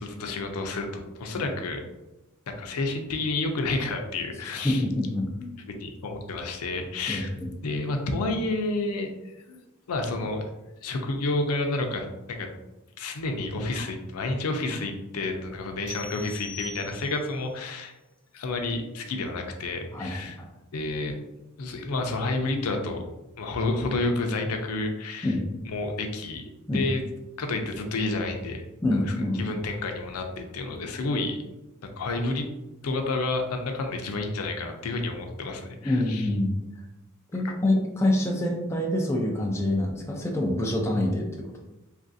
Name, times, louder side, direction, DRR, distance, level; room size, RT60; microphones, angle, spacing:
voice 1, 0.0-1.8 2.5-4.8 5.7-7.3 7.6-9.6 9.9-10.5 10.8-12.5 13.0-17.9 18.3-20.4 20.7-21.2 21.6-23.1 23.4-25.4 25.7-27.0 27.4-28.7 29.0-31.4 31.8-32.5 32.8-36.3, left 2 dB, 90° left, 4 dB, 0.5 m, -30 dB
voice 2, 4.6-5.5 7.1-7.5 19.9-20.5 25.2-25.4 26.7-26.8 28.8-29.6 35.8-36.5 37.3-41.7, left 1 dB, 10° left, 0 dB, 0.4 m, -26 dB
sound 1, 15.9-17.4, left 2 dB, 55° right, 1.4 m, -41 dB
3.1 x 2.5 x 2.5 m, 1.0 s
head